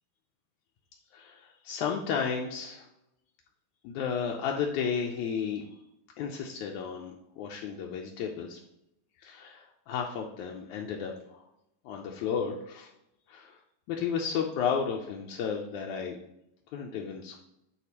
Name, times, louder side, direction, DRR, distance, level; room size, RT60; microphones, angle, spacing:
voice 1, 1.1-2.9 3.8-5.7 6.2-8.6 9.2-11.5 11.9-12.9 13.3-13.6 13.9-16.2 16.7-17.4, left 6 dB, 85° left, 0 dB, 1.7 m, -33 dB
9.9 x 4.2 x 2.9 m, 0.83 s
omnidirectional pair, 4.1 m